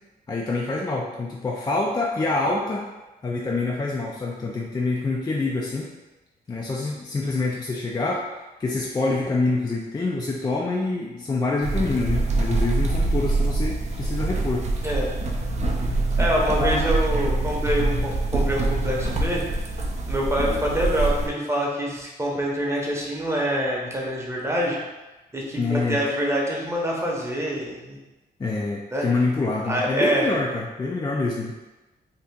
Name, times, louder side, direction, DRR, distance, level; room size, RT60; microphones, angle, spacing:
voice 1, 0.3-2.9 3.2-5.9 6.5-8.3 8.6-14.7 16.2-16.3 16.6-16.9 25.6-26.0 28.4-31.5, left 3 dB, 25° left, -2 dB, 0.4 m, -26 dB
sound 1, 11.6-21.3, right 2 dB, 45° right, 0.5 m, -24 dB
voice 2, 14.8-15.2 15.9-19.4 20.1-24.8 25.3-28.0 28.9-29.1 29.6-30.3, equal, 15° right, -3 dB, 0.8 m, -25 dB
2.8 x 2.4 x 3.5 m, 1.1 s
cardioid pair, 90°, 16 cm